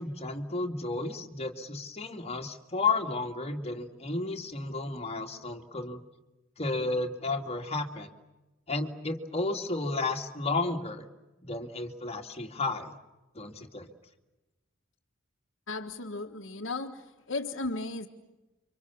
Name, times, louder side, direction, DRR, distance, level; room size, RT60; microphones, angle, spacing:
voice 1, 0.0-6.0 6.6-8.1 8.7-11.0 11.4-12.9 13.3-13.9, left 3 dB, 30° left, 3 dB, 2.4 m, -32 dB
voice 2, 15.7-18.1, left 3 dB, 65° left, 2 dB, 1.5 m, -35 dB
30.0 x 25.5 x 7.2 m, 1.1 s
head